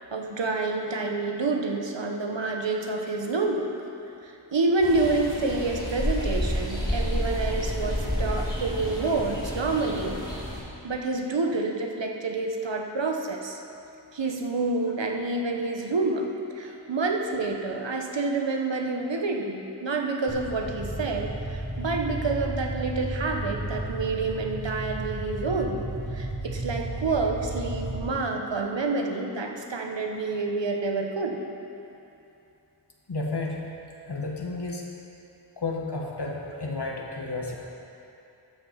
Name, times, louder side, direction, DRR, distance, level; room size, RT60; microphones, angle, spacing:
voice 1, 0.1-3.7 4.2-10.2 10.8-13.6 14.1-25.8 26.1-31.4, right 3 dB, 75° right, 2 dB, 1.1 m, -28 dB
sound 1, 4.8-10.6, equal, 10° left, 2.7 m, -30 dB
sound 2, 20.3-28.0, right 1 dB, 10° right, 1.9 m, -33 dB
voice 2, 33.1-33.7 34.1-34.8 35.6-37.6, left 3 dB, 65° left, -1 dB, 1.3 m, -32 dB
13.5 x 5.6 x 5.7 m, 2.7 s
wide cardioid pair, 40°, 44 cm